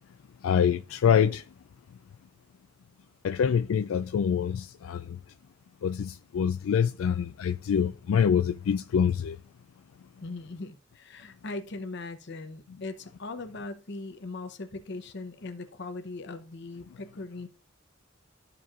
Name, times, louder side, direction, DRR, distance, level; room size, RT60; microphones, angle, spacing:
voice 1, 0.4-1.4 3.2-5.0 5.8-9.4, left 7 dB, 85° left, 0.3 m, -25 dB
voice 2, 10.2-17.5, left 3 dB, 60° left, 0.8 m, -39 dB
12.5 x 4.6 x 2.5 m
head